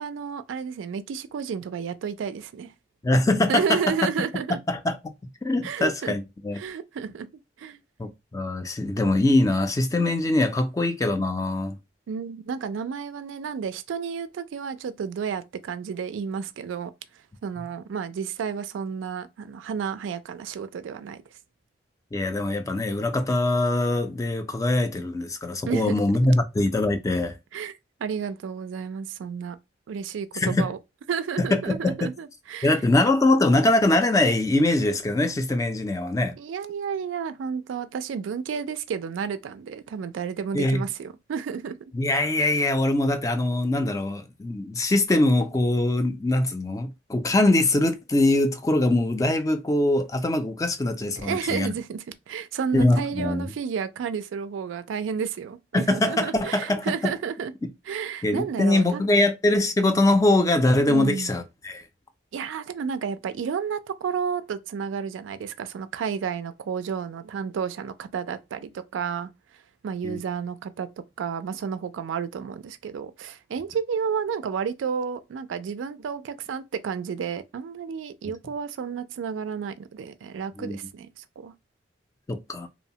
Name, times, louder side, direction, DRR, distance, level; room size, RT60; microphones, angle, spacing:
voice 1, 0.0-2.7 3.5-4.6 5.6-6.1 6.5-7.3 7.6-7.8 12.1-16.9 17.4-21.2 25.7-25.9 27.5-27.7 28.0-29.6 29.9-30.8 31.1-32.8 36.4-41.8 51.2-57.5 57.9-59.0 60.9-61.3 62.3-69.3 69.8-70.9 71.2-81.5, right 6 dB, 90° right, 0.3 m, -31 dB
voice 2, 3.0-3.8 4.7-5.0 5.4-6.6 8.0-11.8 22.1-27.3 30.3-30.7 31.5-32.1 32.6-36.3 40.5-40.8 41.9-51.7 52.7-53.5 55.7-57.1 58.2-61.8 70.0-70.2 80.6-80.8 82.3-82.7, left 2 dB, 15° left, 0.3 m, -23 dB
3.0 x 2.0 x 2.7 m
head